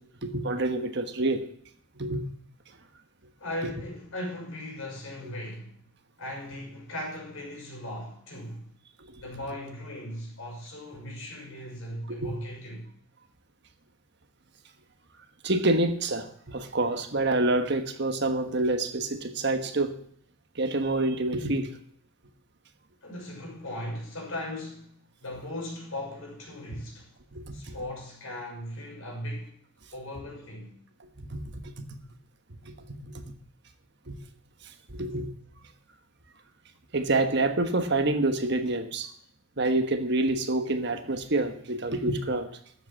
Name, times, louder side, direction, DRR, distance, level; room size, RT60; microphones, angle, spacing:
voice 1, 0.2-1.4 2.0-2.2 12.2-12.4 15.4-19.9 20.6-21.7 27.3-27.7 31.2-31.4 33.0-33.2 34.1-34.2 34.9-35.3 36.9-39.1 39.6-42.5, right 2 dB, 55° right, 1.3 m, -27 dB
voice 2, 3.4-5.7 6.2-8.7 9.2-12.9 23.0-27.1 27.5-29.5 29.9-30.7, left 1 dB, 75° left, 6.2 m, -38 dB
13.0 x 7.8 x 7.3 m
head